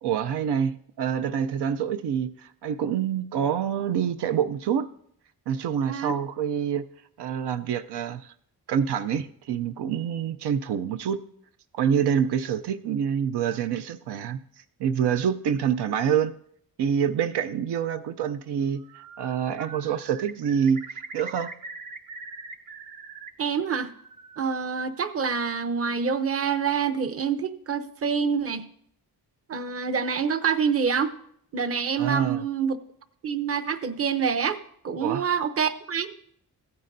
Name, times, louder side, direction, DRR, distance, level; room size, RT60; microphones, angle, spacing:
voice 1, 0.0-4.9 5.5-6.8 7.2-8.3 8.7-11.2 11.7-14.4 14.8-16.3 16.8-18.8 19.2-21.5 32.0-32.4 35.0-35.2, right 8 dB, 85° right, 9 dB, 0.6 m, -26 dB
voice 2, 5.8-6.1 23.4-23.9 24.4-28.7 29.5-31.1 31.5-32.8 33.2-34.6 34.8-36.1, right 6 dB, 35° right, 11 dB, 0.7 m, -26 dB
Bird, 18.7-19.3 19.6-23.3 23.6-24.4, right 4 dB, 55° right, 1.0 m, -42 dB
16.0 x 9.5 x 2.6 m, 0.68 s
cardioid pair, 95°, 39 cm